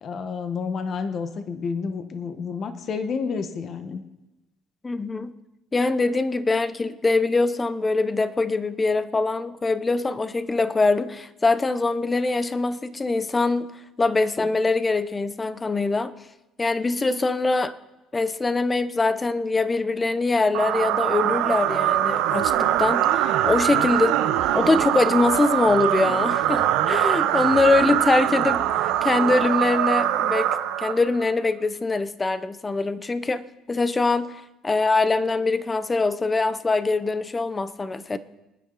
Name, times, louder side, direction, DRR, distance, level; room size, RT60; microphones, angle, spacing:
voice 1, 0.0-4.0, left 5 dB, 45° left, 1.3 m, -30 dB
voice 2, 4.8-5.4 5.7-13.7 14.0-16.1 16.6-17.7 18.1-24.2 24.5-38.2, left 3 dB, 20° left, 0.8 m, -23 dB
sound 1, 20.5-31.3, right 12 dB, 85° right, 1.0 m, -23 dB
26.5 x 9.9 x 4.0 m
cardioid pair, 120°, 0 cm